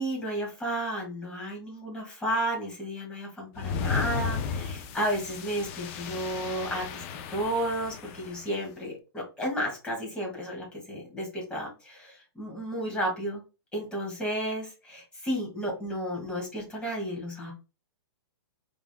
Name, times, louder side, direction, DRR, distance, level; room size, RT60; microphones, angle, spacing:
voice 1, 0.0-13.4 13.7-17.5, right 1 dB, 10° left, -2 dB, 1.8 m, -32 dB
sound 1, 3.5-8.5, left 6 dB, 30° left, 0.5 m, -34 dB
4.7 x 3.6 x 2.2 m, 0.30 s
hypercardioid pair, 155°, 13 cm